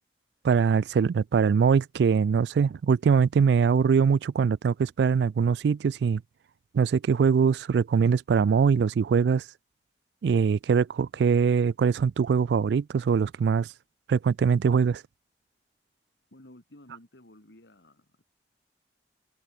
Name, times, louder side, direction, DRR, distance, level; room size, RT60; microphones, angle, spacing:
voice 1, 0.4-6.2 6.7-9.4 10.2-13.7 14.1-15.0, right 6 dB, 75° right, 0.3 m, -22 dB
voice 2, 16.3-18.2, left 1 dB, 90° left, 2.8 m, -53 dB
head